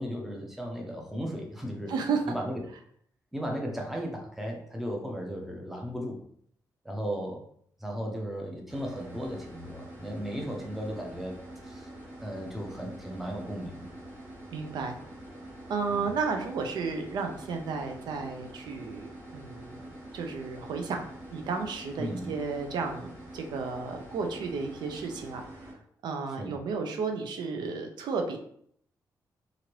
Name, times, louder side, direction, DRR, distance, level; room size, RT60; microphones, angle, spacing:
voice 1, 0.0-1.9 2.3-2.6 3.3-6.2 6.8-7.4 7.8-11.3 11.6-11.9 12.2-13.9 15.9-16.0 22.0-22.3 26.4-26.5, equal, 5° right, 0 dB, 0.5 m, -35 dB
voice 2, 1.9-2.3 14.5-15.0 15.7-19.8 20.1-25.8 26.0-28.4, right 4 dB, 85° right, 4 dB, 0.4 m, -33 dB
sound 1, 8.7-25.7, right 1 dB, 25° right, 1.1 m, -46 dB
3.0 x 2.5 x 2.9 m, 0.65 s
wide cardioid pair, 165°, 7 cm